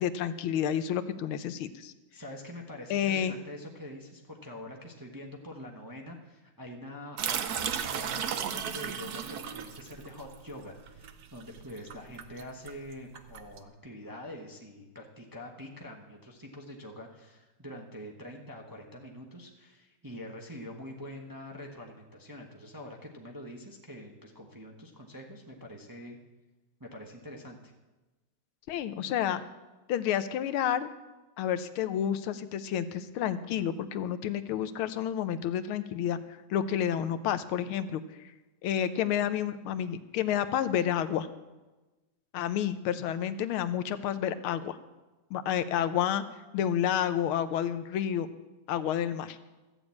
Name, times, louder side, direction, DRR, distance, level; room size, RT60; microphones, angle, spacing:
voice 1, 0.0-1.9 2.9-3.3 28.7-29.4 29.9-30.9 31.4-36.2 36.5-38.3 38.6-41.3 42.3-44.8 45.3-46.2 46.5-48.3 48.7-49.4, left 9 dB, 85° left, 11 dB, 1.6 m, -30 dB
voice 2, 2.1-26.2 26.8-27.7, left 1 dB, 15° right, 0 dB, 0.8 m, -45 dB
sound 1, 7.2-13.6, right 8 dB, 65° right, 1.0 m, -35 dB
14.0 x 7.0 x 8.5 m, 1.1 s
omnidirectional pair, 2.3 m